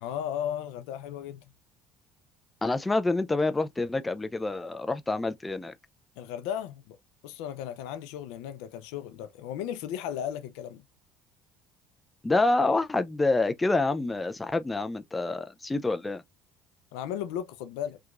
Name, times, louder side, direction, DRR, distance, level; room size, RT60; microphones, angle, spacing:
voice 1, 0.0-1.4 6.2-7.0 7.2-10.8 16.9-18.0, left 10 dB, 80° left, 0.4 m, -35 dB
voice 2, 2.6-5.7 12.2-16.2, left 2 dB, 15° left, 0.3 m, -27 dB
2.9 x 2.3 x 2.4 m
supercardioid pair, 95°, 0 cm